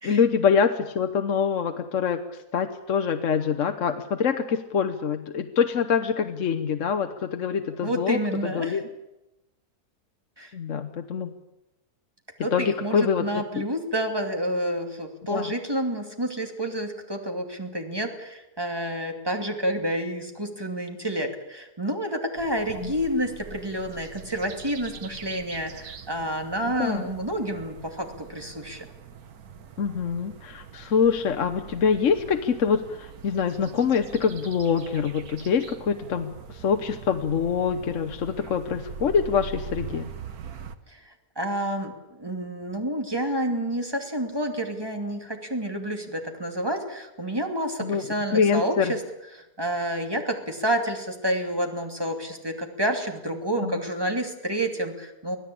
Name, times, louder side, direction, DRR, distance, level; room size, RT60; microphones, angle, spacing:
voice 1, 0.0-2.2 2.5-8.2 8.5-8.8 10.5-11.3 12.5-13.2 13.6-13.7 15.3-15.5 26.8-27.1 29.8-36.3 36.6-40.1 47.8-48.0 48.3-48.9 53.6-53.7, left 6 dB, 55° left, 6 dB, 1.3 m, -25 dB
voice 2, 7.8-8.8 10.4-10.5 12.4-28.9 40.9-49.0 49.3-55.4, right 1 dB, 15° right, 4 dB, 2.6 m, -29 dB
sound 1, 22.4-40.8, right 6 dB, 70° right, 1.7 m, -43 dB
25.0 x 16.5 x 8.7 m, 0.96 s
omnidirectional pair, 1.6 m